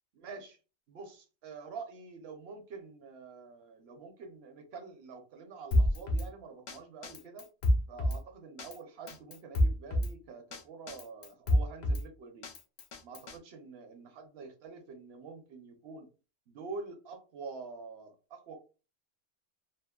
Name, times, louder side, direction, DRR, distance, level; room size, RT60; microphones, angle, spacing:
voice 1, 0.2-0.6 0.9-7.5 7.9-12.5 13.0-16.1 16.5-18.6, right 4 dB, 60° right, 4 dB, 0.8 m, -46 dB
Drum kit, 5.7-6.3 6.7-6.8 7.0-8.2 8.6-8.8 9.1-10.1 10.5-10.6 10.9-12.0 12.4-13.4, left 1 dB, 80° left, 0.4 m, -28 dB
2.7 x 2.1 x 2.3 m, 0.32 s
omnidirectional pair, 1.3 m